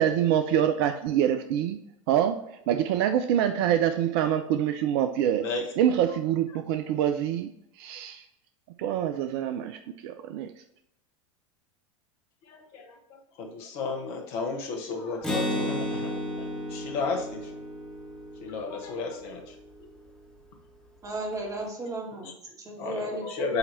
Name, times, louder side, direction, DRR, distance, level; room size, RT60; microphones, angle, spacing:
voice 1, 0.0-1.8 2.1-5.5 5.8-7.5 7.8-8.2 8.8-10.5, right 10 dB, 45° right, 8 dB, 0.5 m, -25 dB
voice 2, 5.4-5.7 12.5-17.6 18.4-19.5 22.2-22.3 22.8-23.6, left 4 dB, 50° left, 2 dB, 1.3 m, -33 dB
Acoustic guitar, 15.2-18.9, equal, 5° left, 1.5 m, -32 dB
voice 3, 21.0-23.6, right 2 dB, 20° right, 0 dB, 1.7 m, -35 dB
7.9 x 3.0 x 4.1 m, 0.79 s
figure-of-eight pair, 85°, 17 cm